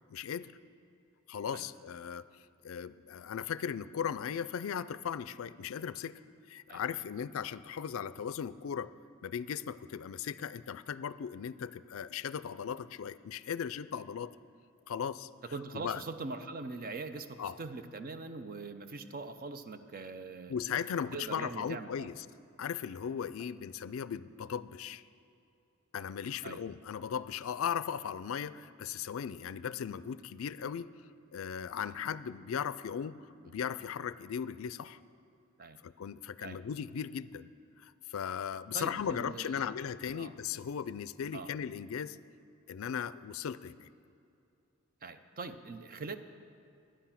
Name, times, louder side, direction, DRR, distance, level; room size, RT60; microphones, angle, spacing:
voice 1, 0.1-0.5 1.3-2.3 2.6-6.2 6.5-8.9 9.2-14.3 14.9-15.3 15.7-16.0 17.4-17.6 20.5-22.3 22.6-25.0 25.9-30.9 31.3-33.2 33.5-35.0 35.8-37.5 37.8-42.2 42.7-43.9, left 7 dB, 70° left, 16 dB, 0.4 m, -37 dB
voice 2, 15.5-20.5 21.1-22.1 26.4-26.6 33.4-33.6 35.6-35.8 36.4-36.6 38.7-39.7 40.1-40.3 41.3-41.5 45.0-46.2, right 3 dB, 45° right, 9 dB, 0.6 m, -42 dB
11.0 x 10.0 x 5.8 m, 2.6 s
head